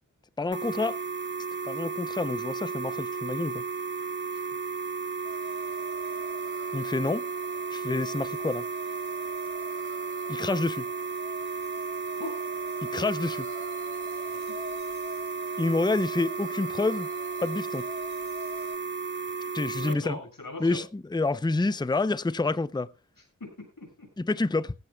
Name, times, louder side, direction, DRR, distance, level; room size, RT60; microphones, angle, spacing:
voice 1, 0.4-1.0 1.6-3.6 6.7-7.2 7.7-8.7 10.3-10.9 12.8-13.5 15.6-17.1 17.4-17.9 19.5-20.2 20.6-22.9 24.2-24.7, left 3 dB, 15° left, 0.5 m, -28 dB
sound 1, 0.5-19.9, right 5 dB, 35° right, 0.7 m, -34 dB
sound 2, 5.2-18.7, left 1 dB, 55° right, 7.3 m, -47 dB
voice 2, 19.8-20.8 23.4-24.1, left 2 dB, 80° left, 6.9 m, -40 dB
17.5 x 16.0 x 2.2 m
wide cardioid pair, 55°, 33 cm